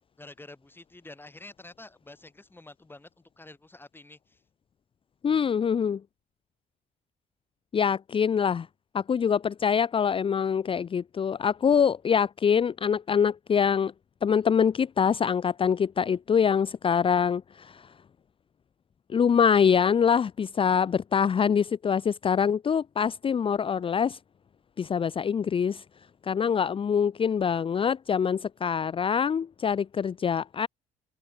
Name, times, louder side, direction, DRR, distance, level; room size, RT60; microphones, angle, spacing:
voice 1, 0.2-3.1 3.4-4.4, left 2 dB, 10° left, 5.9 m, -48 dB
voice 2, 5.2-6.0 7.7-8.7 8.9-13.9 14.2-17.8 19.1-24.2 24.8-25.8 26.2-30.7, left 7 dB, 30° left, 0.8 m, -24 dB
open air
cardioid pair, 110°, 17 cm